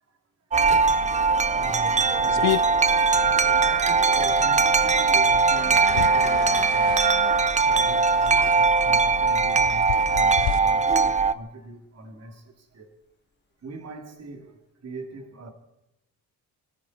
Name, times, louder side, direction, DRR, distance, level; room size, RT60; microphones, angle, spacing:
Wind chime, 0.5-11.3, right 4 dB, 20° right, 0.6 m, -20 dB
sound 1, 1.0-10.6, left 15 dB, 70° left, 0.6 m, -35 dB
voice 1, 1.6-2.6 3.2-7.0 7.6-12.9 13.6-15.5, right 2 dB, 40° right, 2.7 m, -41 dB
sound 2, 5.0-7.5 7.7-7.8, left 5 dB, 25° left, 1.1 m, -39 dB
24.5 x 13.0 x 4.2 m
cardioid pair, 130°, 39 cm